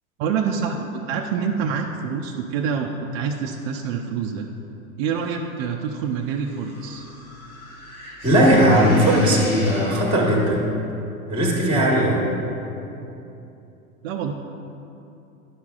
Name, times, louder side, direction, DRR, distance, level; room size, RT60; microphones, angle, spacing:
voice 1, 0.2-4.5 5.0-7.1 14.0-14.3, right 6 dB, 50° right, 2 dB, 0.5 m, -26 dB
sound 1, 6.2-10.5, left 1 dB, 90° left, 1.4 m, -38 dB
voice 2, 8.2-10.6 11.3-12.3, equal, 10° right, -3 dB, 1.2 m, -18 dB
10.5 x 5.8 x 2.4 m, 2.8 s
hypercardioid pair, 95°, 42 cm